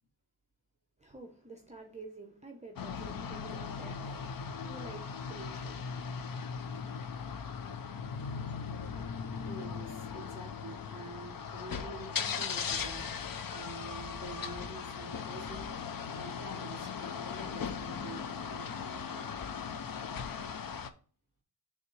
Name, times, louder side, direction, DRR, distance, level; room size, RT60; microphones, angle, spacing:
voice 1, 1.0-6.5, right 3 dB, 15° right, 0.7 m, -50 dB
sound 1, 2.8-20.9, left 6 dB, 55° left, 0.5 m, -38 dB
voice 2, 9.4-19.3, right 2 dB, 40° left, 2.7 m, -48 dB
9.2 x 3.5 x 3.1 m
wide cardioid pair, 125°, 41 cm